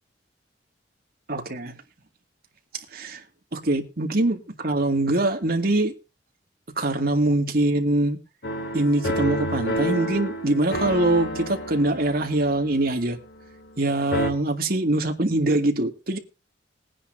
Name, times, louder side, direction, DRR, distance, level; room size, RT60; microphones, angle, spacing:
voice 1, 1.3-1.7 2.7-3.2 3.5-5.9 6.8-8.2 8.7-13.2 13.8-16.2, right 2 dB, 55° right, 2.2 m, -23 dB
sound 1, 8.4-13.8 14.1-14.3, equal, 70° left, 2.3 m, -30 dB
20.5 x 10.0 x 2.7 m
head